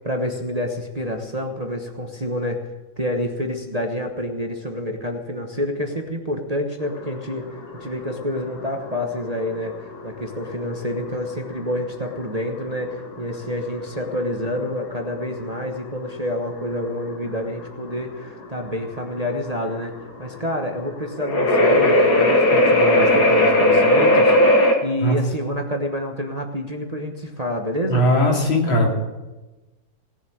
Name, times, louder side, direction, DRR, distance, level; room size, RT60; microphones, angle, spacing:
voice 1, 0.0-2.6 3.0-7.5 7.8-19.9 20.2-28.0, equal, 25° right, 3 dB, 1.0 m, -28 dB
sound 1, 6.8-24.7, left 1 dB, 55° left, 2.2 m, -20 dB
voice 2, 27.9-28.9, equal, 90° left, 0 dB, 3.5 m, -18 dB
18.5 x 7.2 x 8.7 m, 1.1 s
omnidirectional pair, 2.1 m